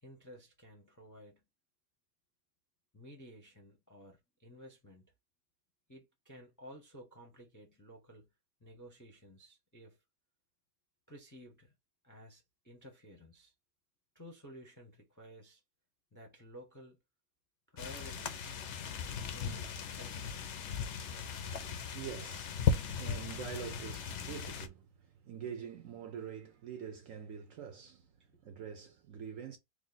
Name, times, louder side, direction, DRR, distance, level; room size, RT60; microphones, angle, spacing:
voice 1, 0.0-1.4 2.9-5.0 5.9-8.3 8.6-10.0 11.1-11.7 12.0-13.5 14.1-15.6 16.1-17.0 17.7-18.6 19.3-20.4 21.7-21.8 28.3-28.5, equal, 20° left, 0.5 m, -54 dB
sound 1, 17.8-24.7, left 6 dB, 65° left, 0.7 m, -37 dB
voice 2, 21.5-28.1 28.4-29.6, right 7 dB, 65° right, 0.9 m, -45 dB
3.1 x 2.5 x 3.8 m
omnidirectional pair, 1.8 m